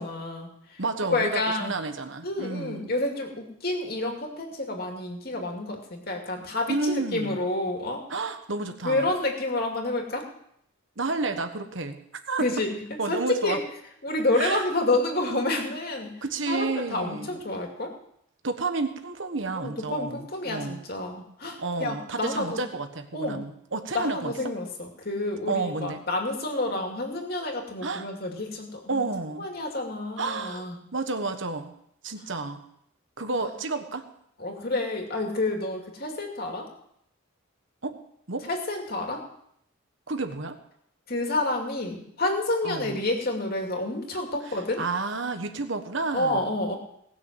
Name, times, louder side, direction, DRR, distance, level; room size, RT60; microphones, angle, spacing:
voice 1, 0.0-0.8 1.1-1.8 2.2-8.0 8.8-10.2 12.4-13.6 14.0-16.1 16.5-17.9 19.6-22.6 23.1-23.4 23.9-29.0 29.4-30.8 33.4-33.5 34.4-36.7 38.4-39.2 41.1-44.8 46.1-46.8, left 2 dB, 45° left, 2 dB, 2.5 m, -29 dB
voice 2, 0.8-2.9 6.7-7.4 8.1-9.1 11.0-12.0 12.3-12.7 13.0-13.6 14.4-14.6 16.2-17.3 18.4-20.8 21.6-24.5 25.5-26.0 27.8-28.0 28.9-29.5 30.2-30.7 30.9-31.7 32.0-32.6 33.2-34.1 37.8-38.0 38.3-38.5 40.1-40.6 42.6-43.0 44.8-46.5, right 3 dB, 65° right, 7 dB, 1.3 m, -30 dB
19.0 x 6.6 x 7.4 m, 0.73 s
head